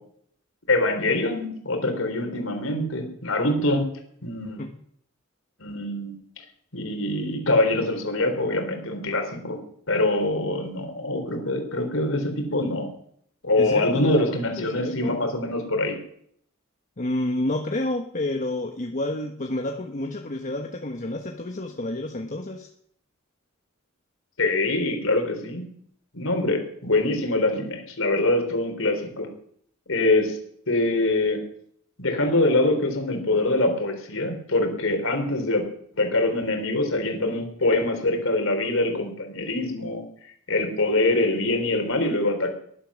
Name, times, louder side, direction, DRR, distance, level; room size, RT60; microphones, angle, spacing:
voice 1, 0.7-3.9 4.2-4.6 5.6-6.2 6.7-9.6 9.9-12.9 13.4-16.0 24.4-25.6 26.1-29.3 29.9-30.4 30.7-31.4 32.0-35.6 36.0-40.0 40.5-42.5, left 2 dB, 75° left, 4 dB, 4.1 m, -24 dB
voice 2, 13.6-14.1 14.6-15.1 17.0-22.7, left 1 dB, 40° left, 3 dB, 1.3 m, -29 dB
19.0 x 11.5 x 6.5 m, 0.67 s
head